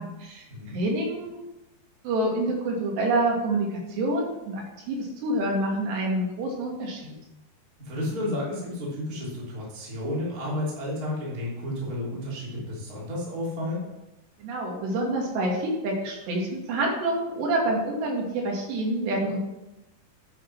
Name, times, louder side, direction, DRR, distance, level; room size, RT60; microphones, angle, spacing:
voice 1, 0.0-0.5 0.7-1.4 2.0-7.2 14.4-19.4, right 1 dB, 80° right, -1 dB, 4.5 m, -27 dB
voice 2, 7.8-13.8, left 1 dB, 25° right, -5 dB, 3.3 m, -31 dB
10.0 x 7.8 x 6.1 m, 0.97 s
omnidirectional pair, 4.8 m